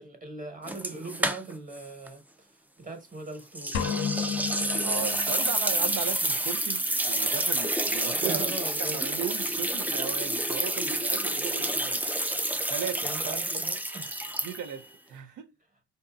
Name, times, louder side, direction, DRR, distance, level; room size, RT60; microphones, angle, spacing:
voice 1, 0.0-3.8 8.1-9.0 13.0-14.2 15.1-15.4, right 3 dB, 25° right, 1.2 m, -40 dB
sound 1, 0.7-1.8 2.1-2.2 3.5-14.8, right 1 dB, 5° right, 0.3 m, -29 dB
sound 2, 3.7-5.8, left 7 dB, 70° left, 0.6 m, -32 dB
voice 2, 4.8-8.5 8.8-12.0 12.7-13.4 14.4-15.5, right 8 dB, 75° right, 0.6 m, -36 dB
3.9 x 2.6 x 2.3 m
cardioid pair, 90°, 30 cm